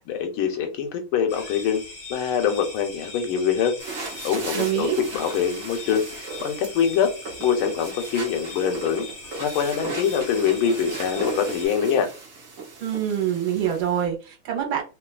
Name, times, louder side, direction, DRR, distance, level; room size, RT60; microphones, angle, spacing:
voice 1, 0.0-1.8 2.1-3.8 4.2-6.1 6.4-7.1 7.4-9.1 9.4-12.1, left 7 dB, 85° left, 1.6 m, -24 dB
sound 1, 1.3-11.7, left 3 dB, 50° left, 1.6 m, -40 dB
sound 2, 3.8-14.0, right 3 dB, 50° right, 1.1 m, -37 dB
voice 2, 4.5-5.0 12.8-14.8, right 10 dB, 75° right, 1.7 m, -25 dB
3.7 x 2.4 x 2.3 m
omnidirectional pair, 2.3 m